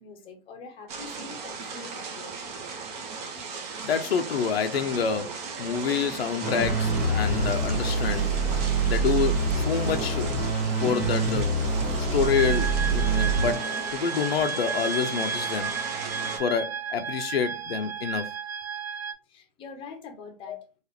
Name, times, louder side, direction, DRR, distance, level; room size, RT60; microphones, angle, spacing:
voice 1, 0.0-2.4 19.3-20.6, left 4 dB, 15° left, 0.8 m, -44 dB
sound 1, 0.9-16.4, right 4 dB, 40° right, 1.0 m, -37 dB
voice 2, 3.8-8.3 8.9-10.3 10.8-11.5 12.0-15.7 16.4-18.3 20.5-20.6, left 6 dB, 70° left, 0.6 m, -28 dB
sound 2, 6.4-14.2, right 3 dB, 5° right, 1.1 m, -26 dB
sound 3, 12.2-19.1, right 6 dB, 85° right, 0.6 m, -33 dB
4.0 x 2.5 x 2.9 m
hypercardioid pair, 125°, 31 cm